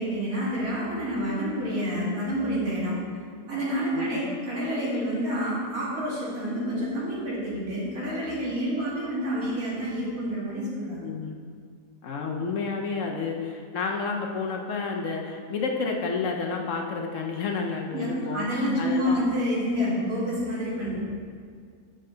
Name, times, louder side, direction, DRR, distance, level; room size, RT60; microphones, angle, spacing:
voice 1, 0.0-3.0 3.5-11.0 17.9-21.0, equal, 70° right, -7 dB, 2.5 m, -28 dB
voice 2, 3.9-4.4 11.0-11.3 12.0-18.4 18.8-19.2 20.9-21.0, left 4 dB, 65° left, 1 dB, 1.0 m, -30 dB
7.6 x 6.5 x 3.8 m, 2.1 s
omnidirectional pair, 1.6 m